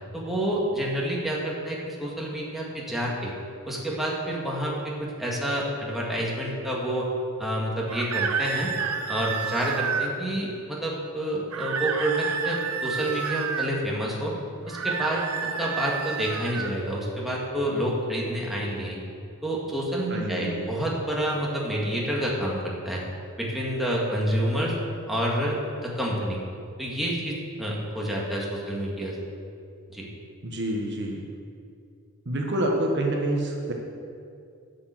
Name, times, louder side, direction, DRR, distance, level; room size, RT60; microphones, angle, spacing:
voice 1, 0.1-3.3 3.7-7.1 7.4-8.7 9.1-14.3 14.7-19.0 19.4-23.0 23.4-24.7 25.1-26.4 26.8-29.1 29.9-30.1, equal, ahead, -5 dB, 2.0 m, -28 dB
sound 1, 7.9-10.1 11.5-13.7 14.7-16.7, right 6 dB, 80° right, 0.8 m, -29 dB
voice 2, 20.1-20.7 30.4-31.2 32.2-33.7, right 1 dB, 55° right, 0 dB, 1.4 m, -27 dB
11.5 x 7.0 x 7.8 m, 2.4 s
head